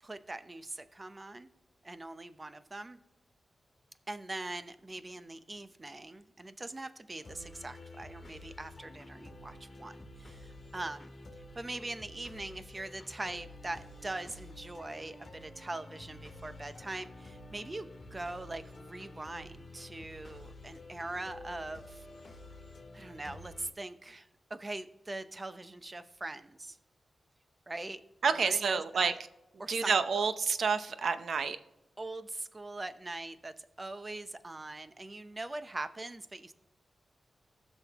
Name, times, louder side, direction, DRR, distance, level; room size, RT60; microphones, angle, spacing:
voice 1, 0.0-1.5 1.8-3.0 4.1-11.1 11.5-22.1 22.9-26.8 27.7-28.0 28.3-29.2 29.6-30.0 32.0-36.5, right 2 dB, 25° right, 11 dB, 0.7 m, -42 dB
sound 1, 7.2-23.7, left 2 dB, 40° left, 2.2 m, -50 dB
voice 2, 28.2-29.1 29.7-31.6, right 5 dB, 75° right, 11 dB, 0.7 m, -29 dB
19.0 x 6.3 x 3.0 m, 1.0 s
wide cardioid pair, 100°, 0 cm